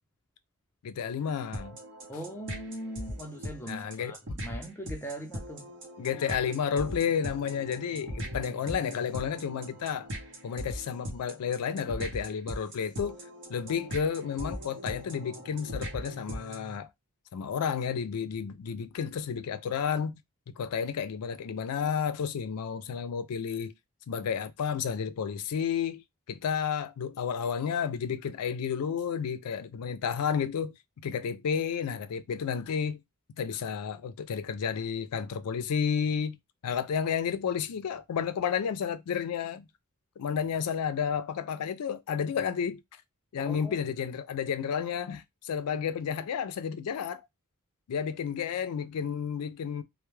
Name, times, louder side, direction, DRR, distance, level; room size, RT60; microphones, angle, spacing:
voice 1, 0.8-1.8 3.7-4.1 6.0-10.1 10.4-13.2 13.5-16.9 17.3-20.2 20.6-23.7 24.1-26.0 26.3-30.7 31.0-33.0 33.4-36.4 36.6-39.7 40.2-42.8 43.3-47.2 47.9-49.8, left 7 dB, 85° left, 0.4 m, -31 dB
sound 1, 1.5-16.8, equal, 55° right, 0.8 m, -40 dB
voice 2, 2.1-5.7 43.4-43.8, right 1 dB, 10° left, 0.5 m, -40 dB
2.1 x 2.1 x 3.0 m
head